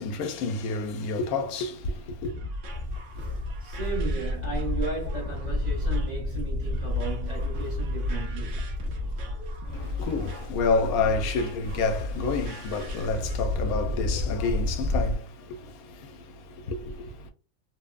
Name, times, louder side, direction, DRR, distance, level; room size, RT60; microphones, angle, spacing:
voice 1, 0.0-2.3 9.6-17.3, left 4 dB, 85° left, 1.1 m, -29 dB
sound 1, 2.0-13.5, left 2 dB, 65° right, 0.9 m, -37 dB
Livestock farm animals working animals, 2.7-15.1, left 2 dB, 85° right, 1.3 m, -31 dB
voice 2, 3.6-8.7, right 5 dB, 35° right, 0.9 m, -35 dB
3.0 x 2.0 x 2.4 m
omnidirectional pair, 1.5 m